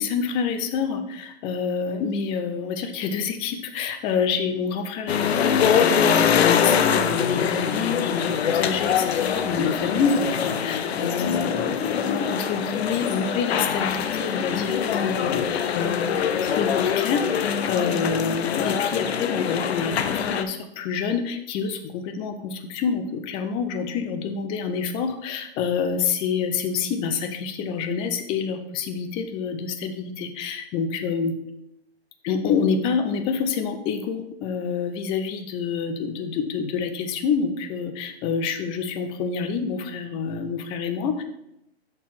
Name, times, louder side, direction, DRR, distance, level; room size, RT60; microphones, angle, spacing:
voice 1, 0.0-31.4 32.2-41.2, left 6 dB, 15° left, 7 dB, 0.4 m, -27 dB
sound 1, 5.1-20.4, left 7 dB, 75° left, 0.7 m, -24 dB
6.5 x 3.7 x 5.9 m, 0.82 s
hypercardioid pair, 135°, 32 cm